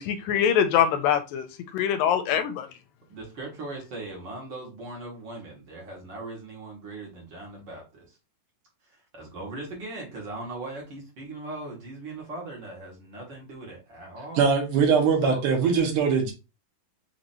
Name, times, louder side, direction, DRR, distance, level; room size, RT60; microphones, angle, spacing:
voice 1, 0.0-1.5 1.7-2.7, left 9 dB, 85° left, 2.3 m, -23 dB
voice 2, 3.1-8.2 8.9-14.4 15.2-15.8, right 2 dB, 40° right, 1.8 m, -39 dB
voice 3, 14.4-16.3, right 6 dB, 70° right, 2.7 m, -21 dB
5.9 x 3.0 x 2.6 m
omnidirectional pair, 4.0 m